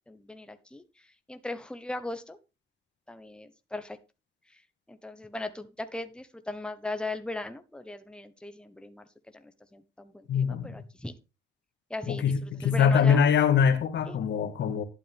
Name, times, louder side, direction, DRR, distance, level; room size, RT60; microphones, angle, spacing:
voice 1, 0.1-2.4 3.1-4.0 4.5-4.6 4.9-9.1 9.3-11.1 11.9-13.3 14.1-14.2, left 2 dB, 5° left, 1.2 m, -38 dB
voice 2, 10.3-10.7 12.1-14.8, left 7 dB, 70° left, 1.7 m, -23 dB
11.5 x 8.6 x 3.6 m
cardioid pair, 75°, 19 cm